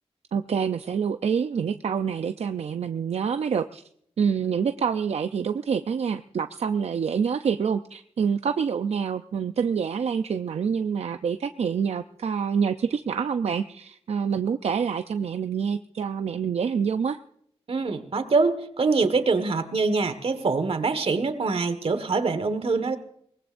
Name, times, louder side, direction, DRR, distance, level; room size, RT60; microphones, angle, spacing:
voice 1, 0.3-3.8 4.2-17.2, right 6 dB, 85° right, 8 dB, 0.5 m, -26 dB
voice 2, 17.7-23.0, right 4 dB, 65° right, 10 dB, 1.5 m, -24 dB
23.0 x 19.5 x 2.6 m, 0.68 s
wide cardioid pair, 110°, 11 cm